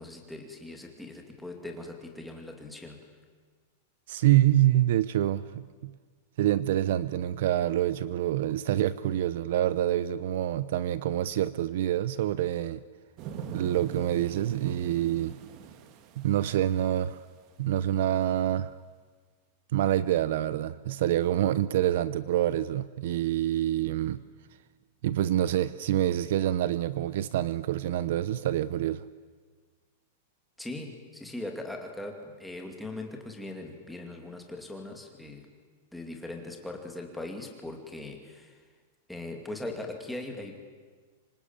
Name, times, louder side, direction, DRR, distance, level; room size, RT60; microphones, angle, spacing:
voice 1, 0.0-3.0 30.6-35.5 35.9-38.6 39.1-40.6, left 2 dB, ahead, 2 dB, 2.5 m, -40 dB
voice 2, 4.1-5.9 6.4-12.8 13.5-15.4 16.2-17.2 17.6-18.7 19.7-24.2 25.0-29.0, right 12 dB, 55° right, 16 dB, 0.8 m, -26 dB
sound 1, 13.2-17.2 17.7-17.8, right 8 dB, 30° right, 1.6 m, -42 dB
26.0 x 24.5 x 9.0 m, 1.5 s
supercardioid pair, 175°, 0 cm